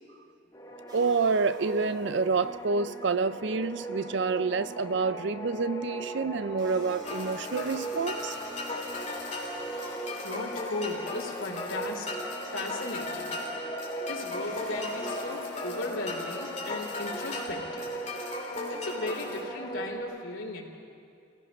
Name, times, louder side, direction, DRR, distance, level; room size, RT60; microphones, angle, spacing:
sound 1, 0.5-20.0, right 1 dB, 15° left, 1.5 m, -39 dB
sound 2, 0.9-2.8 6.6-11.9 14.4-16.8, equal, 20° right, 3.8 m, -48 dB
voice 1, 0.9-8.4, right 4 dB, 60° right, 14 dB, 0.5 m, -28 dB
sound 3, 7.1-19.4, left 2 dB, 35° left, 2.8 m, -38 dB
voice 2, 10.2-12.1 12.5-13.4 14.1-17.9 18.7-20.6, left 2 dB, 90° left, 0 dB, 3.4 m, -36 dB
29.5 x 18.0 x 5.4 m, 2.5 s
head